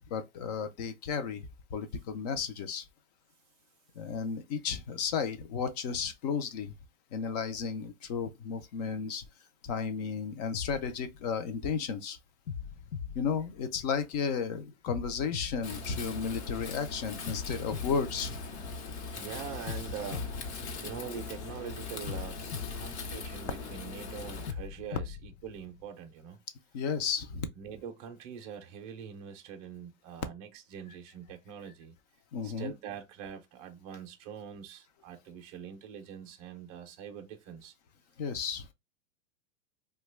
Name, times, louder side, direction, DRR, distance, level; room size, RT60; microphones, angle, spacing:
voice 1, 0.0-2.9 4.0-6.7 7.1-9.2 9.6-12.2 13.1-18.4 26.7-27.5 32.3-32.7 38.2-38.7, left 6 dB, 35° left, 0.4 m, -33 dB
sound 1, 10.5-11.8 12.5-14.2 14.9-16.6 17.3-19.0 19.7-21.4 22.1-23.8 24.5-25.9, left 7 dB, 90° left, 0.6 m, -42 dB
Wind, 15.6-24.5, left 4 dB, 65° left, 0.9 m, -40 dB
voice 2, 19.1-22.4 22.7-26.4 27.6-32.0 32.4-37.7, right 8 dB, 30° right, 0.5 m, -44 dB
2.9 x 2.2 x 3.1 m
supercardioid pair, 160°, 36 cm